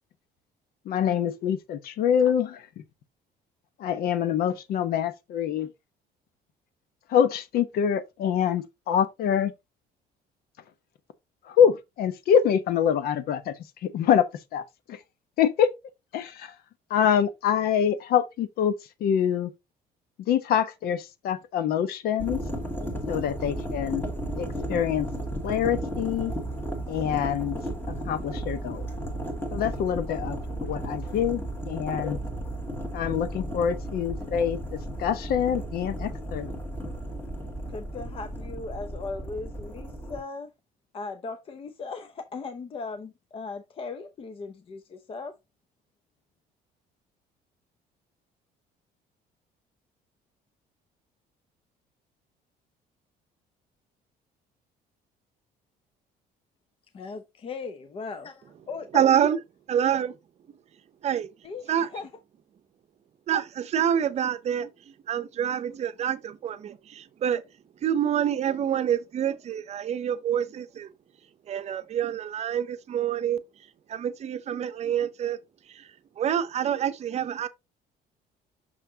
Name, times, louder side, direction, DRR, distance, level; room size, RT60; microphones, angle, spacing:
voice 1, 0.9-2.6 3.8-5.7 7.1-9.5 11.5-13.5 13.8-14.3 14.5-15.0 15.4-15.7 16.1-16.5 16.9-19.5 20.3-22.4 23.1-24.0 24.4-25.1 25.4-26.3 26.9-27.6 28.1-28.9 29.5-32.2 32.9-36.5, left 8 dB, 65° left, 0.9 m, -25 dB
sound 1, 22.2-40.2, right 1 dB, 10° left, 1.7 m, -34 dB
voice 2, 37.7-40.5 40.9-45.3 56.9-59.1 61.4-62.1, left 4 dB, 35° left, 0.7 m, -38 dB
voice 3, 58.9-59.4 59.7-60.1 61.0-61.3 61.7-61.9 63.3-64.7 65.1-67.4 67.8-70.9 71.5-73.4 73.9-75.4 75.7-75.9 76.2-77.5, right 9 dB, 40° right, 0.7 m, -26 dB
6.3 x 5.8 x 2.8 m
cardioid pair, 140°, 17 cm